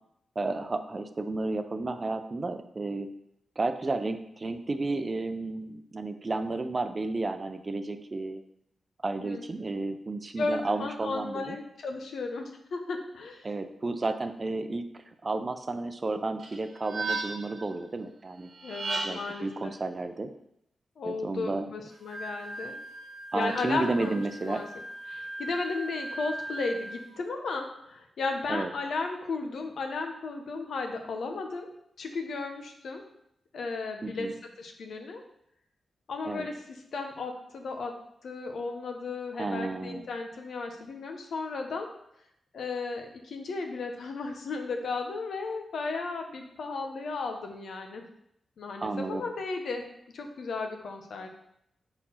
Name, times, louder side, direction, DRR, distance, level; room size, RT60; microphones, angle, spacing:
voice 1, 0.4-3.1 3.6-8.4 9.0-11.6 13.4-18.5 19.0-20.3 21.0-21.7 23.3-24.6 28.5-28.7 34.0-34.3 36.3-36.5 39.4-40.0 48.8-49.3, right 3 dB, 40° right, 8 dB, 0.5 m, -32 dB
voice 2, 9.2-9.7 10.4-13.4 18.6-19.7 21.0-22.8 23.3-24.7 25.1-31.7 32.0-33.0 33.5-34.3 34.6-35.2 36.1-37.9 38.2-41.9 42.5-48.0 48.6-49.8 50.1-51.3, left 3 dB, 80° left, 4 dB, 0.9 m, -34 dB
sound 1, 16.4-17.6 18.6-19.4, right 3 dB, 60° right, 1.2 m, -34 dB
Wind instrument woodwind instrument, 21.9-27.2, right 1 dB, 90° right, 0.9 m, -40 dB
4.4 x 4.4 x 5.7 m, 0.76 s
cardioid pair, 70°, 0 cm